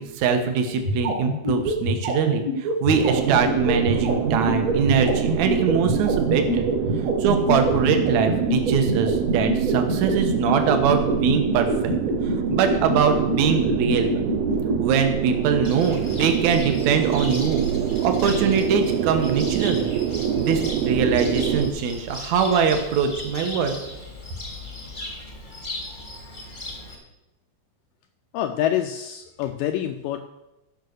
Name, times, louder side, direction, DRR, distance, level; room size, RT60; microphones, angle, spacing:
voice 1, 0.0-6.7 7.2-12.0 12.5-14.3 14.8-17.6 18.0-19.9 20.4-23.7, right 6 dB, 65° right, 6 dB, 1.9 m, -22 dB
sound 1, 0.8-14.8, equal, 40° right, 1.2 m, -25 dB
sound 2, 2.9-21.7, right 10 dB, 85° right, 2.8 m, -26 dB
Cricket, 15.6-26.9, left 2 dB, 30° left, 0.9 m, -37 dB
voice 2, 28.3-30.2, left 11 dB, 85° left, 7 dB, 1.9 m, -26 dB
13.0 x 5.6 x 6.5 m, 0.95 s
omnidirectional pair, 4.5 m